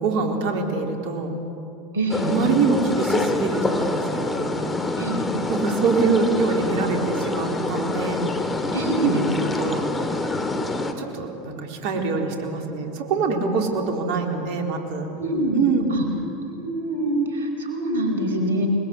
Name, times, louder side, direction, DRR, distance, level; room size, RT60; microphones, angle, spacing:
voice 1, 0.0-1.4 2.2-4.5 5.5-8.2 9.0-9.1 9.4-9.9 11.0-15.1 15.6-15.9, right 4 dB, 60° right, 2 dB, 4.1 m, -24 dB
voice 2, 1.9-2.4 5.0-5.3 8.7-9.2 15.2-16.0 16.5-18.7, right 1 dB, 80° right, 4 dB, 5.2 m, -25 dB
sound 1, 2.1-10.9, left 2 dB, 20° left, 2.8 m, -26 dB
28.5 x 21.0 x 8.2 m, 2.8 s
hypercardioid pair, 80°, 0 cm